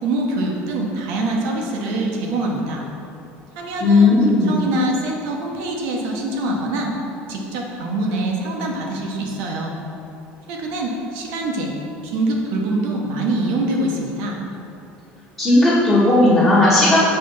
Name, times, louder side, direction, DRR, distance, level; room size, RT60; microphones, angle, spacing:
voice 1, 0.0-2.8 3.6-4.2 4.4-6.9 7.3-9.7 10.5-11.7 12.0-14.4, right 2 dB, 70° right, 0 dB, 1.0 m, -24 dB
voice 2, 3.8-4.6 15.4-17.0, left 2 dB, 10° left, -11 dB, 1.1 m, -14 dB
5.7 x 3.3 x 5.4 m, 2.7 s
cardioid pair, 165°, 4 cm